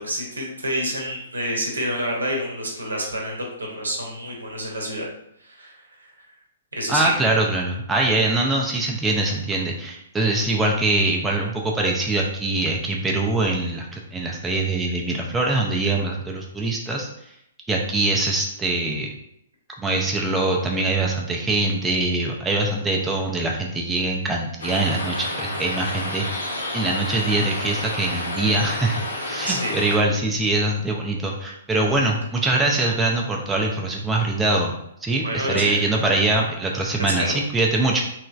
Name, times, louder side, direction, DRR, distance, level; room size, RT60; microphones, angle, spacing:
voice 1, 0.0-5.0 5.4-6.3 6.7-7.1 29.5-29.8 35.2-35.8 37.0-37.4, equal, 75° right, 0 dB, 0.8 m, -28 dB
voice 2, 6.9-17.1 17.7-19.1 19.8-34.7 35.0-38.0, right 2 dB, 10° right, -1 dB, 0.4 m, -23 dB
sound 1, 24.6-30.0, left 1 dB, 70° left, 0.7 m, -30 dB
3.1 x 2.9 x 2.4 m, 0.77 s
figure-of-eight pair, 115°, 0 cm